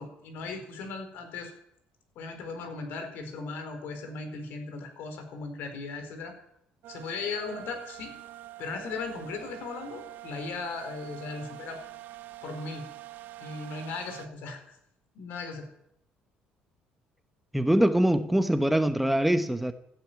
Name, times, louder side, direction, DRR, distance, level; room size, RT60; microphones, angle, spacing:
voice 1, 0.0-1.5 2.1-6.3 6.9-8.2 8.6-11.8 12.4-12.9 13.4-14.6 15.1-15.7, left 4 dB, 70° left, 4.4 m, -37 dB
sound 1, 6.8-14.3, right 15 dB, 65° right, 1.0 m, -45 dB
voice 2, 17.5-19.7, right 1 dB, 5° right, 0.9 m, -23 dB
15.0 x 10.5 x 9.2 m
cardioid pair, 125°, 3 cm